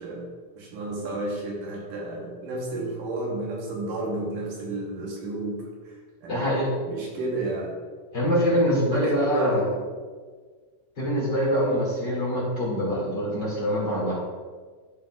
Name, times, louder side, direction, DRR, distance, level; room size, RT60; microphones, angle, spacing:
voice 1, 0.0-6.5 6.8-7.8 8.4-9.8 11.5-11.8, right 2 dB, 75° right, -1 dB, 2.6 m, -32 dB
voice 2, 6.3-6.7 8.1-9.6 11.0-14.1, equal, 35° left, -7 dB, 2.3 m, -24 dB
13.5 x 5.0 x 2.4 m, 1.5 s
omnidirectional pair, 3.9 m